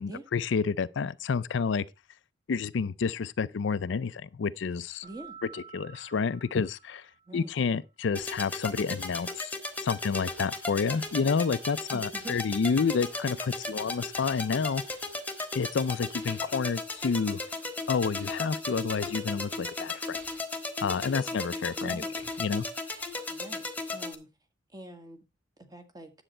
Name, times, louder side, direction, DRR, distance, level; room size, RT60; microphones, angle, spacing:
voice 1, 0.0-1.8 2.5-5.0 5.5-7.0 7.3-9.6 9.8-14.8 15.5-17.4 17.9-20.2 20.8-22.0 22.4-22.7, left 5 dB, 65° left, 0.4 m, -29 dB
voice 2, 5.0-5.4 7.3-7.5 11.9-12.4 21.8-22.1 23.3-23.6 23.9-24.3 24.7-25.2 25.6-26.1, right 2 dB, 20° right, 1.6 m, -44 dB
Keyboard (musical), 5.0-7.4, right 7 dB, 40° right, 2.5 m, -50 dB
sound 1, 8.2-24.2, left 2 dB, 10° left, 1.5 m, -36 dB
10.0 x 8.0 x 4.3 m
head